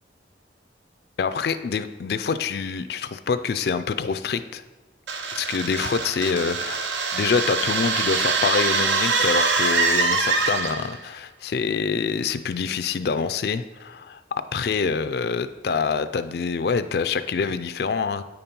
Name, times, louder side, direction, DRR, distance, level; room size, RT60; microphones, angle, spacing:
voice 1, 1.2-4.6 5.3-14.2 14.5-18.2, left 5 dB, 55° left, 11 dB, 0.4 m, -26 dB
sound 1, 5.1-11.0, right 4 dB, 80° right, 0.8 m, -24 dB
9.3 x 5.3 x 4.3 m, 1.2 s
head